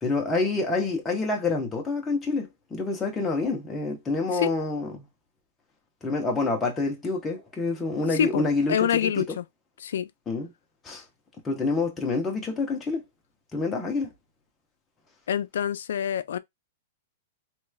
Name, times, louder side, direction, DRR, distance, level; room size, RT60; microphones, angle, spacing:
voice 1, 0.0-5.1 6.0-9.2 10.3-10.5 10.8-11.0 11.4-13.0 13.5-14.1, left 3 dB, 15° left, 0.9 m, -27 dB
voice 2, 8.1-8.4 8.7-9.4 9.8-10.1 15.3-16.4, left 9 dB, 80° left, 0.4 m, -26 dB
3.2 x 3.0 x 2.2 m
hypercardioid pair, 155°, 0 cm